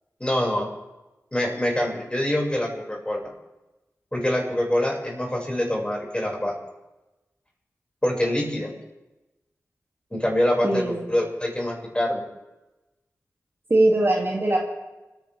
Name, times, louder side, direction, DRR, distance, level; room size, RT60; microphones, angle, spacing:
voice 1, 0.2-0.7 1.3-3.3 4.1-6.5 8.0-8.7 10.1-12.2, left 1 dB, 20° left, -2 dB, 6.5 m, -25 dB
voice 2, 10.6-11.0 13.7-14.6, right 1 dB, 45° right, -2 dB, 3.0 m, -20 dB
29.5 x 10.5 x 3.7 m, 1.0 s
cardioid pair, 40°, 6 cm